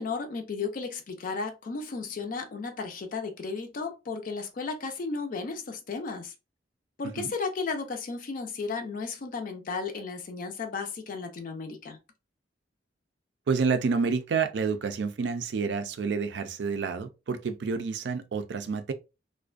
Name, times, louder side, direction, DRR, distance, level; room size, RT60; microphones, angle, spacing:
voice 1, 0.0-6.3 7.0-12.0, left 4 dB, 50° left, 0.4 m, -34 dB
voice 2, 13.5-18.9, right 5 dB, 70° right, 0.4 m, -29 dB
2.4 x 2.1 x 2.4 m
head